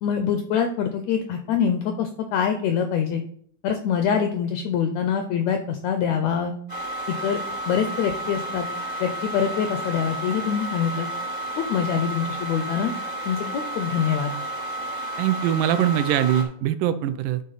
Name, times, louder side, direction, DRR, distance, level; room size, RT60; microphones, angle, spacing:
voice 1, 0.0-3.2 3.6-6.5 7.2-7.4 7.7-8.6 9.0-11.1 11.6-12.9 13.3-14.3, left 7 dB, 80° left, 6 dB, 1.6 m, -24 dB
sound 1, 6.7-16.4, right 1 dB, 30° right, 0.4 m, -31 dB
voice 2, 15.2-17.4, right 11 dB, 80° right, 11 dB, 2.1 m, -22 dB
11.5 x 4.2 x 4.0 m, 0.63 s
omnidirectional pair, 3.8 m